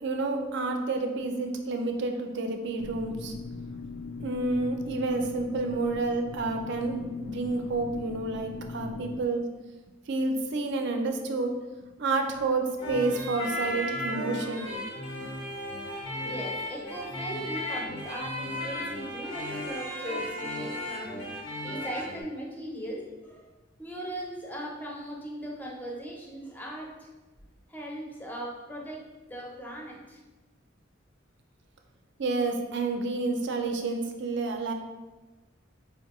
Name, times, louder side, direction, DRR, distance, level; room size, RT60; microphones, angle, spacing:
voice 1, 0.0-3.3 4.2-9.5 10.1-11.6 12.0-14.7 32.2-34.7, right 3 dB, 60° right, 4 dB, 0.4 m, -29 dB
sound 1, 2.8-9.2, left 4 dB, 65° left, 0.3 m, -39 dB
sound 2, 12.8-22.2, left 1 dB, 85° left, 1.0 m, -35 dB
voice 2, 15.9-23.5 23.8-27.1 27.7-30.2, equal, 10° left, -2 dB, 0.5 m, -39 dB
4.4 x 2.1 x 3.0 m, 1.2 s
head